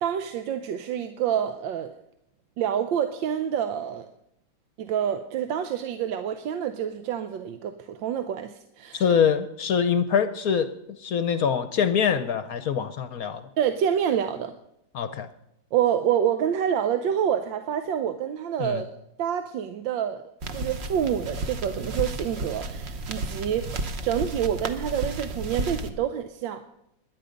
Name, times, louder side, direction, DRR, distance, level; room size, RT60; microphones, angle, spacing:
voice 1, 0.0-1.9 2.6-4.1 4.8-9.0 13.6-14.5 15.7-18.9 19.2-20.2 20.5-23.7 24.0-26.6, right 9 dB, 75° right, 8 dB, 1.5 m, -27 dB
voice 2, 8.9-10.7 11.0-13.5 14.9-15.3 18.6-18.8, left 7 dB, 60° left, 11 dB, 1.0 m, -24 dB
sound 1, 20.4-25.9, right 2 dB, 45° right, 1.0 m, -32 dB
20.0 x 11.0 x 5.2 m, 0.81 s
omnidirectional pair, 2.1 m